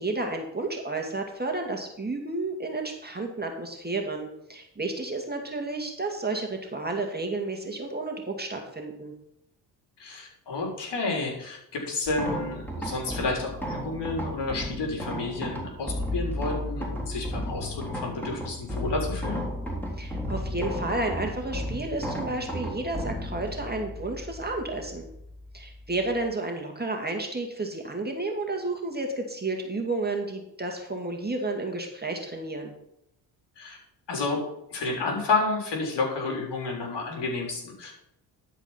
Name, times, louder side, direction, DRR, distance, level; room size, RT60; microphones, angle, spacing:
voice 1, 0.0-9.1 20.0-25.1 25.5-32.7, right 2 dB, 20° right, 2 dB, 2.2 m, -31 dB
voice 2, 10.0-19.4 33.6-33.8 34.1-34.4 34.7-38.0, left 3 dB, 60° left, 0 dB, 3.6 m, -30 dB
sound 1, 12.1-26.3, equal, 5° left, 3.6 m, -34 dB
12.0 x 5.1 x 5.7 m, 0.78 s
hypercardioid pair, 55°, 48 cm